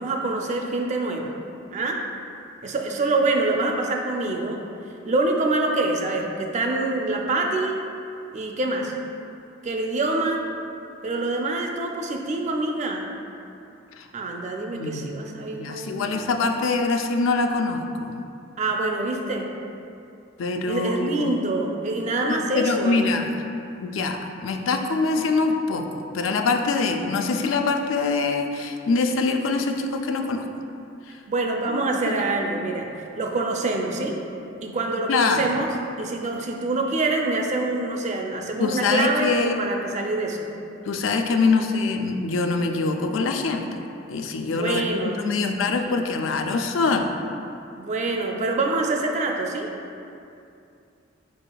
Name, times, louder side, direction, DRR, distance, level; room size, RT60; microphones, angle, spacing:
voice 1, 0.0-1.3 1.7-2.0 2.6-4.6 5.0-7.8 8.3-8.9 9.6-10.4 11.0-13.1 14.1-16.4 18.6-19.5 20.7-23.1 31.3-34.2 34.6-35.7 36.0-40.5 41.3-41.4 44.5-45.2 45.9-46.0 47.8-49.7, right 2 dB, 40° right, 1 dB, 0.4 m, -25 dB
voice 2, 14.7-15.1 15.5-18.2 20.4-21.4 22.3-23.3 23.8-30.5 31.1-31.2 31.7-32.1 35.1-35.4 38.6-39.6 40.9-43.8 44.1-47.1, left 4 dB, 80° left, 4 dB, 0.4 m, -24 dB
4.8 x 4.7 x 2.3 m, 2.6 s
head